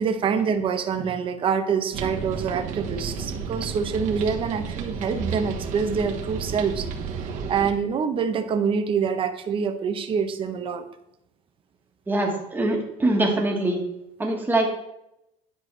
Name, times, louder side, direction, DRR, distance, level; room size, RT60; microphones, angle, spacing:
voice 1, 0.0-10.8, right 6 dB, 30° right, 8 dB, 0.7 m, -26 dB
sound 1, 1.9-7.7, right 5 dB, 50° right, 1.2 m, -32 dB
voice 2, 12.1-13.8 14.2-14.7, right 1 dB, 10° right, 0 dB, 1.5 m, -23 dB
9.8 x 4.7 x 3.2 m, 0.85 s
cardioid pair, 125°, 17 cm